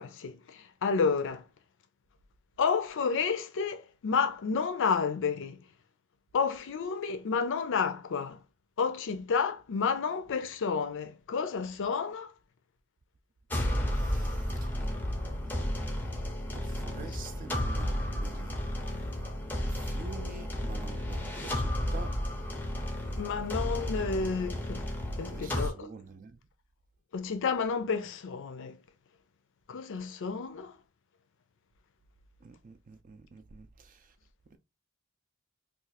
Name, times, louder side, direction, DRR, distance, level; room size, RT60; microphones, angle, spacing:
voice 1, 0.0-1.4 2.6-5.6 6.3-8.4 8.8-12.3 23.2-24.8 25.2-25.9 27.1-28.8 29.7-30.7, left 5 dB, 60° left, 0.4 m, -30 dB
sound 1, 13.5-25.7, left 1 dB, 10° left, 0.5 m, -33 dB
voice 2, 13.9-14.7 16.5-18.6 19.7-22.1 23.8-24.4 25.3-26.4 32.4-34.0 34.5-34.6, right 4 dB, 40° right, 0.4 m, -47 dB
2.5 x 2.4 x 3.9 m
head